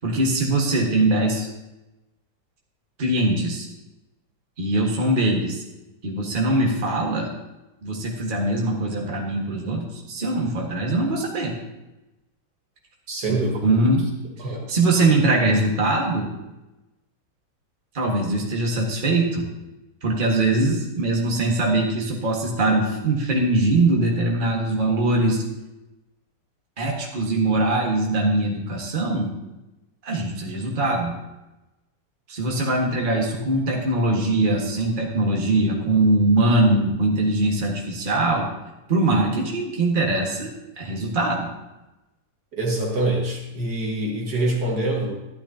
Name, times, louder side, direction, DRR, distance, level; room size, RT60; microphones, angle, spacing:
voice 1, 0.0-1.5 3.0-3.7 4.6-5.6 6.0-7.3 7.8-11.5 13.3-14.1 14.7-16.3 17.9-19.5 20.0-25.4 26.8-29.3 30.0-31.2 32.3-38.5 38.9-41.5, right 2 dB, 30° right, -1 dB, 1.7 m, -22 dB
voice 2, 13.1-13.7 14.4-14.8 42.5-45.1, right 2 dB, 65° right, -1 dB, 2.3 m, -25 dB
12.0 x 12.0 x 2.8 m, 1.0 s
omnidirectional pair, 1.9 m